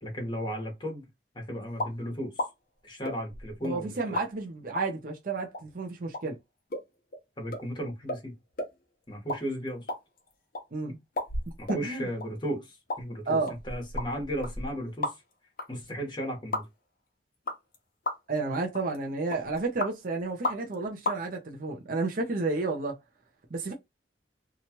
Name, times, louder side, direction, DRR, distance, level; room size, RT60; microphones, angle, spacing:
voice 1, 0.0-1.1 1.3-2.3 2.8-3.9 7.4-8.3 9.1-9.9 11.6-13.4 13.6-15.1 15.7-16.6, equal, 25° left, 1.2 m, -35 dB
sound 1, 1.8-2.0 2.4-2.5 3.0-3.7 4.1-4.3 4.8-4.9 5.5-5.6 6.1-6.2 6.7-6.8 7.1-7.2 7.5-7.6 8.1-8.2 8.6-8.7 9.1-9.4 9.7-10.6 11.2-11.8 12.2-12.3 12.9-13.0 13.5-15.3 15.6-15.7 16.5-16.6 17.5-17.7 18.0-18.4 18.7-19.0 19.3-19.9 20.4-20.7 21.0-21.2, left 2 dB, 55° left, 0.8 m, -33 dB
voice 2, 3.6-6.4 10.7-11.0 11.7-12.1 13.3-13.5 18.3-23.0 23.5-23.7, right 3 dB, 50° right, 0.6 m, -31 dB
2.9 x 2.3 x 2.9 m
head